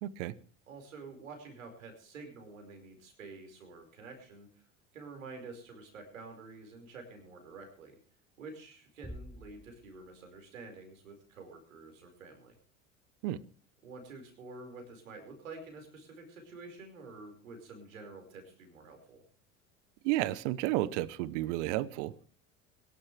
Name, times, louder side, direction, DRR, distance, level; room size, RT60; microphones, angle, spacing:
voice 1, 0.0-0.3 13.2-13.4 20.0-22.3, right 16 dB, 65° right, 20 dB, 0.9 m, -32 dB
voice 2, 0.7-4.5 4.9-8.0 8.4-12.5 13.8-19.2, right 3 dB, 80° right, 5 dB, 5.1 m, -49 dB
Bass drum, 9.0-10.5, equal, 5° left, 0.9 m, -48 dB
22.5 x 12.0 x 3.3 m, 0.42 s
hypercardioid pair, 75°, 39 cm